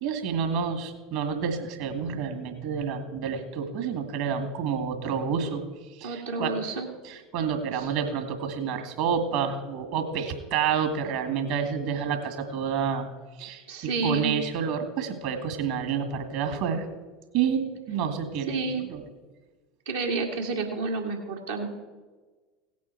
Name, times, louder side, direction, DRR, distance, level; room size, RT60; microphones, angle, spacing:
voice 1, 0.0-5.6 5.9-6.5 7.0-13.1 13.4-16.9 17.3-19.0, right 7 dB, 60° right, 7 dB, 1.9 m, -29 dB
voice 2, 6.0-6.9 7.7-7.9 13.7-14.4 18.5-18.8 19.9-21.7, right 3 dB, 80° right, -3 dB, 1.9 m, -30 dB
16.5 x 8.4 x 4.6 m, 1.3 s
figure-of-eight pair, 75°, 0 cm